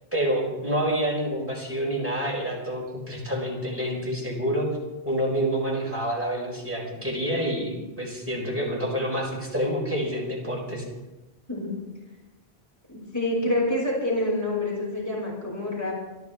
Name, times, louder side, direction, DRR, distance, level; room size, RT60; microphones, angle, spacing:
voice 1, 0.1-4.7 5.0-10.8, equal, 10° right, -3 dB, 5.0 m, -28 dB
voice 2, 12.9-15.9, left 1 dB, 15° left, -4 dB, 6.1 m, -27 dB
26.5 x 12.5 x 3.5 m, 1.1 s
omnidirectional pair, 1.1 m